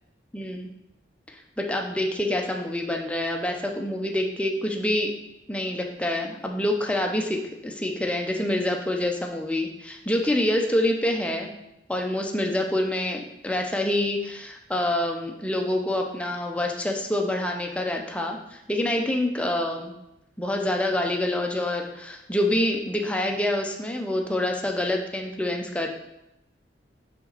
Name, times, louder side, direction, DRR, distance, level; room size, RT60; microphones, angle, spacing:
voice 1, 0.3-0.7 1.6-5.1 5.5-11.5 11.9-19.9 20.4-25.9, left 1 dB, 5° left, 1 dB, 0.7 m, -26 dB
5.6 x 5.2 x 4.0 m, 0.87 s
head